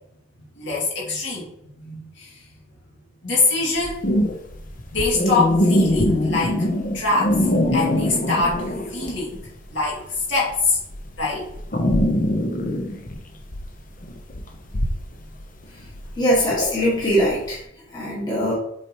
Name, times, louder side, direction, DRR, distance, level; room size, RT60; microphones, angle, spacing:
voice 1, 0.6-1.5 1.8-2.4 3.2-4.0 4.9-6.7 6.9-10.8 11.2-11.5, left 3 dB, 55° left, -5 dB, 2.5 m, -24 dB
sound 1, 3.8-9.3 9.6-17.5, left 1 dB, 40° left, 0.8 m, -23 dB
voice 2, 16.2-17.6 17.9-18.5, equal, 20° left, -7 dB, 1.7 m, -21 dB
7.4 x 4.7 x 3.0 m, 0.77 s
head